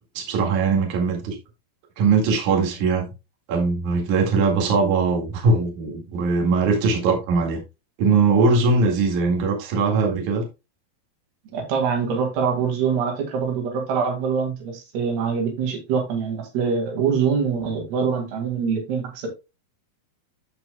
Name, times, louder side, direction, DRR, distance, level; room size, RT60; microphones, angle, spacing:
voice 1, 0.1-1.4 2.0-3.1 3.5-7.6 8.0-10.4, right 4 dB, 55° right, 3.2 m, -20 dB
voice 2, 11.5-19.3, right 6 dB, 85° right, 4.0 m, -24 dB
14.0 x 4.9 x 2.2 m
omnidirectional pair, 4.5 m